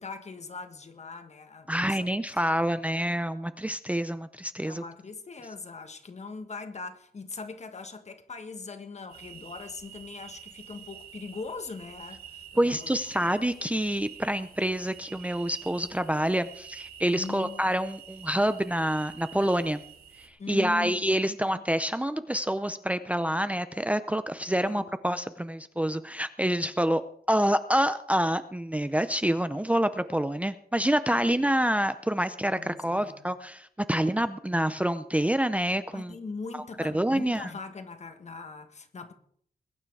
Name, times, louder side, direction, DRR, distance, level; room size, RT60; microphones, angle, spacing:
voice 1, 0.0-2.1 2.4-2.6 3.1-3.2 4.6-13.3 17.1-17.6 20.4-20.9 21.3-21.6 24.7-24.9 31.1-31.5 32.6-33.3 35.9-39.1, left 4 dB, 45° left, 1.5 m, -41 dB
voice 2, 1.7-4.8 12.6-19.8 20.2-36.1 36.5-37.5, right 1 dB, 10° right, 0.6 m, -27 dB
sound 1, 9.1-20.3, right 9 dB, 75° right, 3.7 m, -48 dB
21.0 x 9.4 x 4.7 m
wide cardioid pair, 135°, 16 cm